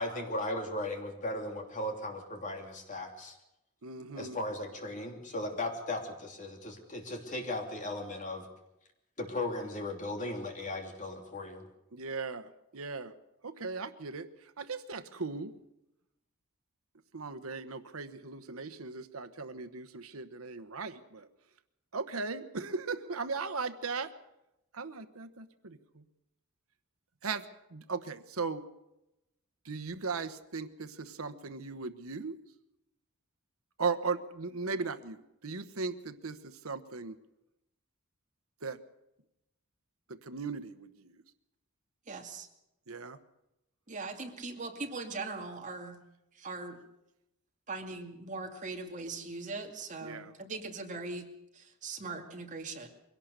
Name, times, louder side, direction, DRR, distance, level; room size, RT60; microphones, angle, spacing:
voice 1, 0.0-3.4 4.2-8.4 9.2-11.7, left 1 dB, 35° left, 3 dB, 3.0 m, -37 dB
voice 2, 3.8-4.4 11.9-13.1 13.4-14.3 14.6-15.5 17.1-21.3 21.9-24.1 24.7-26.0 27.2-27.4 27.7-28.6 29.6-32.3 33.8-37.2 38.6-38.8 40.1-41.2 42.9-43.2 50.0-50.3, right 4 dB, 85° right, 12 dB, 1.1 m, -37 dB
voice 3, 42.1-42.5 43.9-46.0 46.4-46.8 47.7-51.3 51.5-52.9, right 3 dB, 35° right, 3 dB, 2.3 m, -40 dB
23.0 x 17.5 x 6.7 m, 0.89 s
head